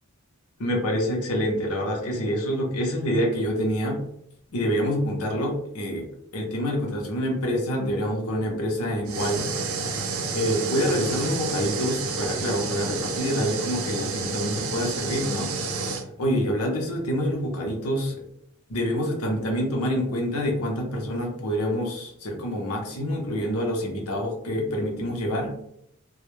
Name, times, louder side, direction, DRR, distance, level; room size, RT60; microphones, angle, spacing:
voice 1, 0.6-4.0 4.5-6.0 6.3-9.8 10.3-15.5 16.2-18.2 18.7-25.6, equal, 90° left, 1 dB, 0.7 m, -26 dB
sound 1, 9.1-16.0, right 4 dB, 65° right, 0.4 m, -30 dB
2.2 x 2.0 x 3.0 m, 0.74 s
head